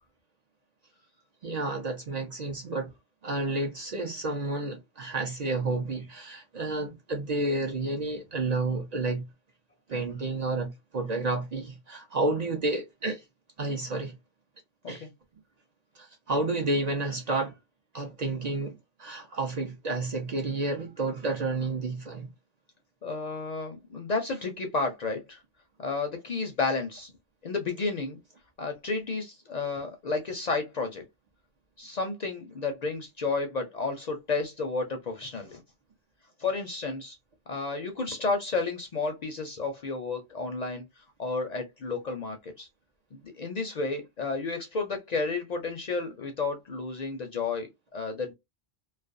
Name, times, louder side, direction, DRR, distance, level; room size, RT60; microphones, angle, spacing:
voice 1, 1.4-2.9 3.2-9.2 9.9-13.2 13.6-14.1 14.9-15.1 16.0-17.5 17.9-22.3, right 2 dB, 50° right, 0.5 m, -30 dB
voice 2, 23.0-25.4 25.8-27.1 27.4-28.2 28.6-31.0 31.8-35.6 36.4-37.2 37.5-42.7 43.3-48.3, left 3 dB, 55° left, 0.5 m, -32 dB
2.4 x 2.1 x 2.4 m
omnidirectional pair, 1.1 m